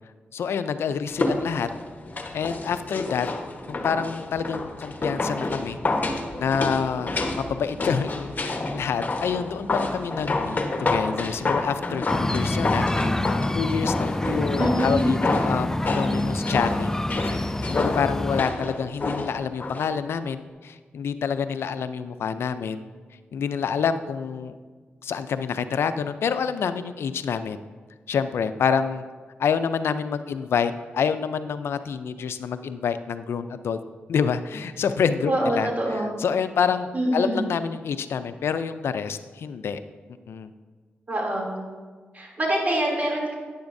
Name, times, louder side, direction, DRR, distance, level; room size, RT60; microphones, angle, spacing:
voice 1, 0.3-1.7 2.3-3.3 3.7-5.8 6.4-12.9 13.2-17.0 17.3-17.4 17.7-22.8 23.3-24.6 25.0-27.6 28.1-29.0 29.4-33.8 34.1-39.8 40.3-40.5, left 6 dB, 80° left, 11 dB, 0.4 m, -27 dB
sound 1, 1.1-19.9 20.2-20.3, left 2 dB, 45° left, 1.1 m, -29 dB
sound 2, 12.1-18.4, left 1 dB, 10° left, 0.3 m, -27 dB
voice 2, 14.2-15.0 35.3-36.1 36.9-37.4 41.1-41.5 42.1-43.4, right 1 dB, 40° right, -2 dB, 2.8 m, -25 dB
10.5 x 9.7 x 2.6 m, 1.5 s
cardioid pair, 55°, 4 cm